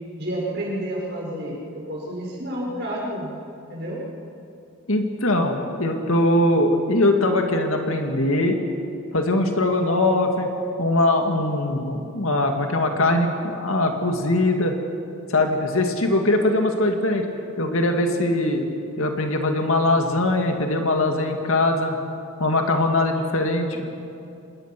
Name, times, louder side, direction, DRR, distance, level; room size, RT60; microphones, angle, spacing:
voice 1, 0.2-3.3 3.7-4.0, right 1 dB, 50° right, -4 dB, 6.3 m, -30 dB
voice 2, 4.9-8.6 9.1-10.5 10.8-14.7 15.3-17.3 17.6-18.6 19.0-22.0 22.4-23.9, left 2 dB, 65° left, 4 dB, 2.2 m, -21 dB
26.0 x 20.5 x 6.1 m, 2.6 s
head